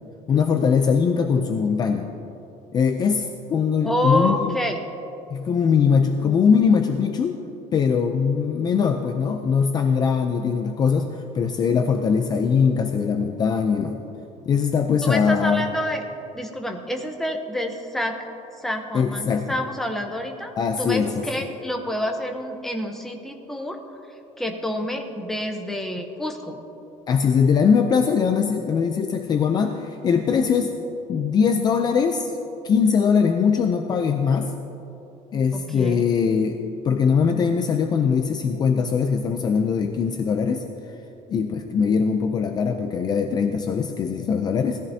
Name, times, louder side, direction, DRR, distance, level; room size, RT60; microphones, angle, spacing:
voice 1, 0.3-2.1 2.7-4.6 5.3-7.4 7.7-14.0 14.5-15.7 18.9-19.5 20.6-21.2 27.1-30.7 31.1-32.3 32.6-34.5 35.3-36.6 36.8-40.6 41.3-44.8, left 6 dB, 30° left, 5 dB, 0.5 m, -21 dB
voice 2, 3.8-4.8 15.0-16.0 16.3-18.2 18.6-23.8 24.4-26.6 35.5-36.1, left 1 dB, ahead, 3 dB, 0.8 m, -28 dB
19.0 x 14.0 x 2.8 m, 2.9 s
cardioid pair, 180°, 14 cm